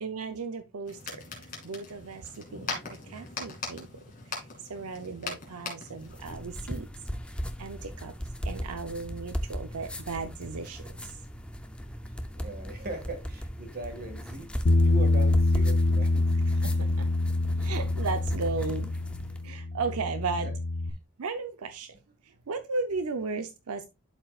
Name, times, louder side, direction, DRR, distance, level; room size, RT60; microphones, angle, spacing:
voice 1, 0.0-3.9 4.3-6.9 7.6-8.1 8.4-11.2 16.6-17.1 17.6-18.9 19.4-20.5 21.2-22.0 22.2-23.9, right 4 dB, 85° right, 8 dB, 0.7 m, -35 dB
sound 1, 0.8-6.3, left 4 dB, 40° left, 2.6 m, -40 dB
sound 2, 6.0-19.5, equal, 5° left, 0.5 m, -38 dB
voice 2, 12.3-16.2 16.5-16.7, right 1 dB, 45° right, 4 dB, 2.0 m, -39 dB
Bass guitar, 14.7-20.9, left 2 dB, 60° left, 0.6 m, -25 dB
11.5 x 4.5 x 2.4 m, 0.25 s
head